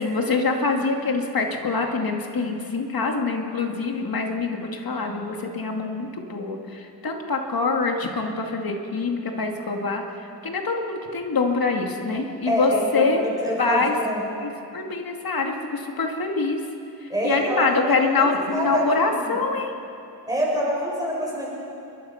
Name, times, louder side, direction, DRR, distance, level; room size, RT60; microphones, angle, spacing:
voice 1, 0.0-13.2 13.6-13.9 14.4-16.6 17.0-19.7, left 3 dB, 55° left, 2 dB, 2.4 m, -25 dB
voice 2, 12.5-14.2 17.1-18.8 19.1-19.4 20.3-21.5, equal, 10° right, -5 dB, 7.5 m, -26 dB
29.0 x 22.0 x 5.8 m, 2.7 s
wide cardioid pair, 165°, 42 cm